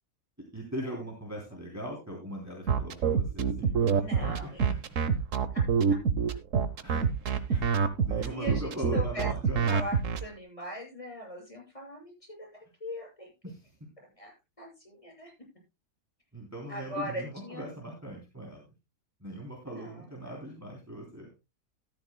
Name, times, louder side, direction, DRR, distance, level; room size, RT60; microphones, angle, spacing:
voice 1, 0.5-4.8 6.8-7.0 7.5-9.7 13.4-13.7 16.3-18.6 19.2-21.3, right 1 dB, 10° right, -1 dB, 3.3 m, -40 dB
sound 1, 2.7-10.2, right 6 dB, 60° right, 1.3 m, -26 dB
voice 2, 4.0-4.7 5.5-5.6 7.5-7.6 8.2-9.3 9.7-13.3 14.2-14.3 14.6-15.3 16.7-17.7 19.7-20.4, equal, 20° left, -1 dB, 6.9 m, -40 dB
13.5 x 13.5 x 2.2 m, 0.25 s
omnidirectional pair, 1.6 m